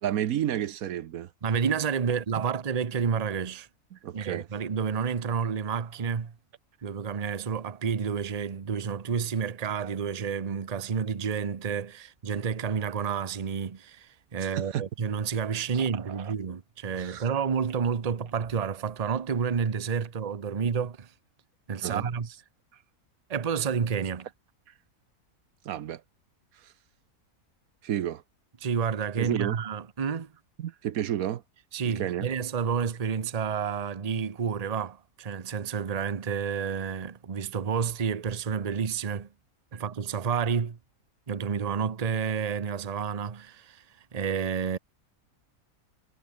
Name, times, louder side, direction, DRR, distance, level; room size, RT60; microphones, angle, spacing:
voice 1, 0.0-1.3 2.3-2.4 3.9-4.5 14.4-14.8 15.7-16.3 17.0-17.3 21.8-22.1 25.6-26.0 26.6-26.7 27.8-28.2 29.2-29.6 30.6-31.4 31.9-32.3 39.7-39.8, right 11 dB, 80° right, 1.2 m, -31 dB
voice 2, 1.4-3.7 4.1-6.3 6.8-21.1 21.7-22.3 23.3-24.3 28.6-30.3 31.7-39.3 39.7-40.8 41.3-43.8 44.1-44.8, right 6 dB, 30° right, 0.9 m, -30 dB
omnidirectional pair, 1.5 m